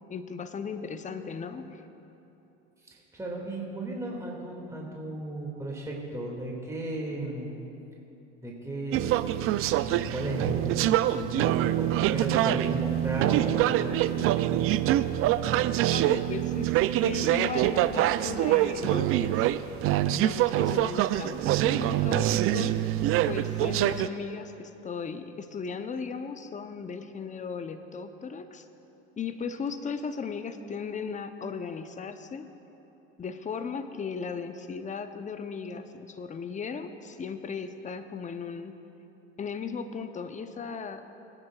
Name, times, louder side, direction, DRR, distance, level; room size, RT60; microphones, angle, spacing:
voice 1, 0.1-1.8 15.8-16.7 17.0-19.5 20.1-22.8 23.3-28.7 29.2-32.5 33.2-38.8 39.4-41.0, left 5 dB, 20° left, 9 dB, 0.7 m, -36 dB
voice 2, 2.9-7.6 8.4-14.7, right 1 dB, 10° right, -3 dB, 2.2 m, -35 dB
sound 1, 8.9-24.1, right 13 dB, 45° right, 0.4 m, -25 dB
20.5 x 9.9 x 2.4 m, 3.0 s
hypercardioid pair, 85°, 33 cm